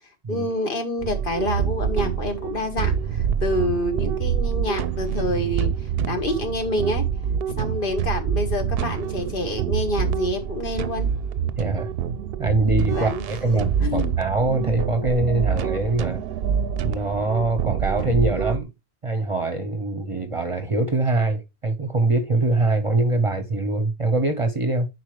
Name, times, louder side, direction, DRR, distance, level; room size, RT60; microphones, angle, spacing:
voice 1, 0.3-7.0 7.5-11.1 12.9-14.1, left 1 dB, 55° left, 1.4 m, -27 dB
sound 1, 1.0-18.6, right 8 dB, 65° right, 0.8 m, -26 dB
voice 2, 11.6-11.9 12.4-16.2 16.8-18.7 19.0-24.9, right 2 dB, 35° right, 0.8 m, -23 dB
10.0 x 4.4 x 3.2 m
omnidirectional pair, 1.1 m